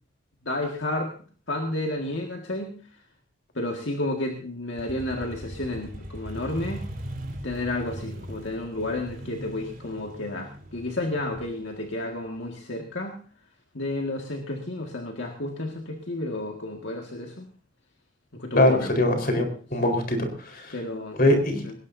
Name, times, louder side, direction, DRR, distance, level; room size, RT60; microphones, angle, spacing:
voice 1, 0.4-1.1 1.5-3.0 3.5-6.8 7.4-13.2 13.7-17.5 18.3-18.9 19.8-19.9 20.7-21.2 21.6-21.7, left 1 dB, 65° left, 2 dB, 1.9 m, -31 dB
Motorcycle, 4.8-12.4, equal, 45° right, 3.8 m, -39 dB
voice 2, 18.5-19.4 19.7-20.7 21.2-21.6, left 1 dB, 45° left, 4 dB, 4.3 m, -22 dB
20.0 x 18.0 x 2.7 m, 0.40 s
head